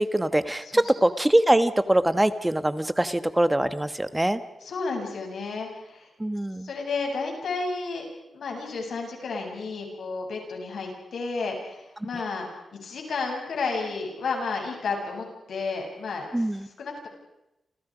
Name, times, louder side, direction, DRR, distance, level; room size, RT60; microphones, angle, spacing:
voice 1, 0.0-4.4 6.2-6.7 12.0-12.1 16.3-16.7, right 1 dB, 10° right, 12 dB, 1.3 m, -23 dB
voice 2, 4.6-6.1 6.6-8.0 8.3-16.4 16.8-17.1, left 4 dB, 75° left, 2 dB, 8.0 m, -32 dB
29.5 x 29.0 x 5.1 m, 0.90 s
wide cardioid pair, 145°, 0 cm